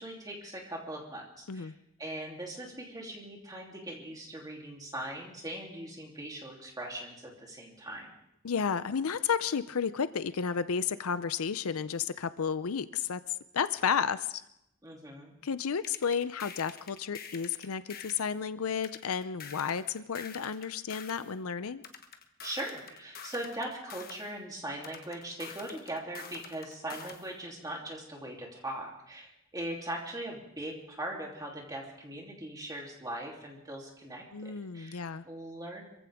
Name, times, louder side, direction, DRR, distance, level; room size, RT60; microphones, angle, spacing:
voice 1, 0.0-1.7 2.0-8.1 14.8-15.4 22.4-35.8, right 1 dB, 15° right, -1 dB, 3.1 m, -40 dB
voice 2, 8.4-13.2 13.5-14.4 15.4-21.8 34.3-35.2, left 6 dB, 80° left, 13 dB, 0.5 m, -32 dB
sound 1, 15.8-18.3 18.8-21.3 21.8-24.3 24.8-27.3, left 7 dB, 45° left, 1.3 m, -47 dB
26.0 x 15.5 x 3.6 m, 0.81 s
head